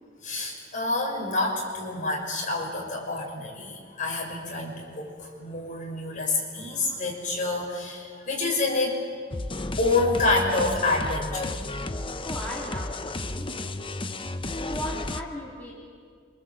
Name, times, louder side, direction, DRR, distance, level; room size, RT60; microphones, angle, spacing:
voice 1, 0.2-9.0 9.8-11.6, left 3 dB, 40° left, -1 dB, 6.6 m, -27 dB
sound 1, 9.3-15.2, left 2 dB, 25° left, 0.8 m, -33 dB
voice 2, 12.2-13.5 14.4-15.8, left 1 dB, 10° left, -5 dB, 3.5 m, -37 dB
27.5 x 26.5 x 7.8 m, 2.1 s
head